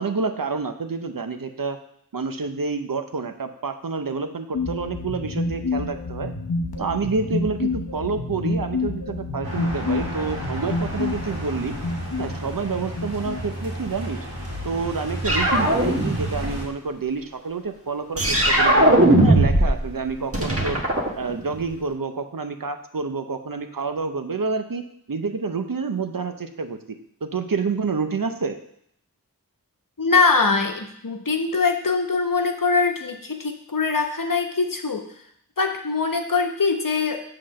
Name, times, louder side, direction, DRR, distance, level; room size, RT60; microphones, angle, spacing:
voice 1, 0.0-1.8 2.1-6.3 6.8-11.8 12.2-14.2 14.6-20.8 21.2-24.8 25.1-26.8 27.2-28.6, right 4 dB, 70° right, 7 dB, 0.7 m, -28 dB
sound 1, 4.5-14.1, left 3 dB, 90° left, 0.8 m, -29 dB
sound 2, 9.4-16.7, right 1 dB, 85° right, 2.1 m, -33 dB
sound 3, 15.2-16.6 18.2-19.8 20.1-21.7, right 1 dB, 40° right, 1.3 m, -18 dB
voice 2, 30.0-35.0 35.6-37.2, left 4 dB, 65° left, 4 dB, 1.0 m, -22 dB
6.7 x 3.9 x 6.3 m, 0.70 s
wide cardioid pair, 40°, 36 cm